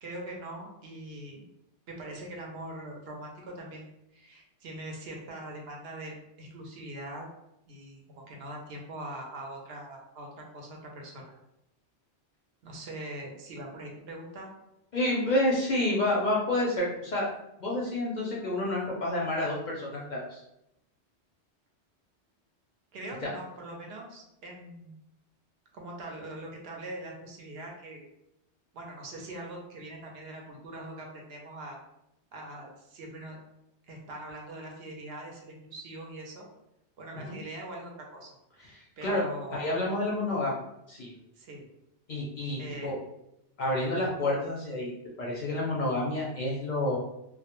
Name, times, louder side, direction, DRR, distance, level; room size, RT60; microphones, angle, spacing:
voice 1, 0.0-1.4 1.9-7.3 7.7-8.0 8.3-11.2 12.6-14.5 22.9-25.0 25.7-28.0 28.7-31.8 32.3-33.4 33.9-36.5 37.0-38.3 39.0-39.7 41.4-41.6 42.6-42.9, right 1 dB, 70° right, 0 dB, 0.8 m, -42 dB
voice 2, 14.9-17.3 17.6-20.4 23.2-23.3 37.3-37.4 38.6-39.2 39.5-40.6 40.9-41.1 42.1-43.0 43.6-44.9 45.2-47.0, left 1 dB, 55° left, -4 dB, 0.6 m, -29 dB
2.2 x 2.1 x 2.8 m, 0.84 s
omnidirectional pair, 1.1 m